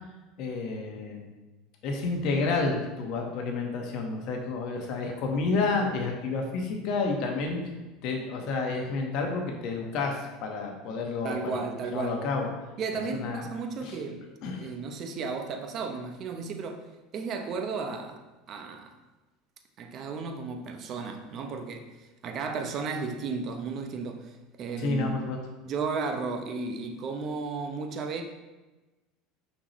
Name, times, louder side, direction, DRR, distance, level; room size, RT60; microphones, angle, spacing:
voice 1, 0.4-1.3 1.8-7.6 8.0-11.6 11.9-12.5 12.9-13.4 13.8-14.0 14.4-14.7 24.8-25.4, left 3 dB, 60° left, 1.3 m, -30 dB
voice 2, 11.2-12.3 12.8-14.2 14.6-16.8 17.1-18.2 18.5-18.9 19.8-25.1 25.6-28.2, right 4 dB, 45° right, 0.8 m, -34 dB
6.0 x 5.7 x 3.1 m
supercardioid pair, 125°, 0 cm